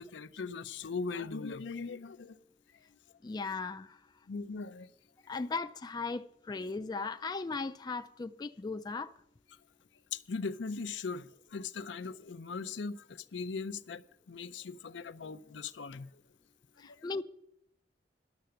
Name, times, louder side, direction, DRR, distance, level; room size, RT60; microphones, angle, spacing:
voice 1, 0.0-2.4 4.3-4.9 10.1-14.0 14.3-16.1 16.8-17.0, left 4 dB, 85° left, 0.5 m, -39 dB
voice 2, 3.2-4.0 5.3-9.1 16.8-17.2, left 4 dB, 25° left, 0.3 m, -37 dB
11.5 x 6.8 x 7.7 m
head